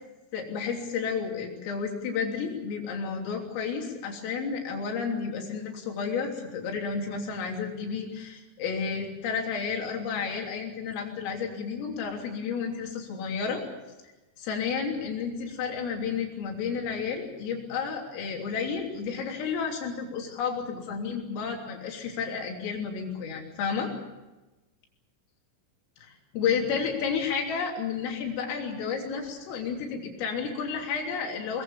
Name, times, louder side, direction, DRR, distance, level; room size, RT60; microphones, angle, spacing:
voice 1, 0.3-13.6 14.4-23.9 26.0-31.6, left 6 dB, 80° left, 1 dB, 5.9 m, -31 dB
22.5 x 21.5 x 7.3 m, 1.1 s
omnidirectional pair, 5.8 m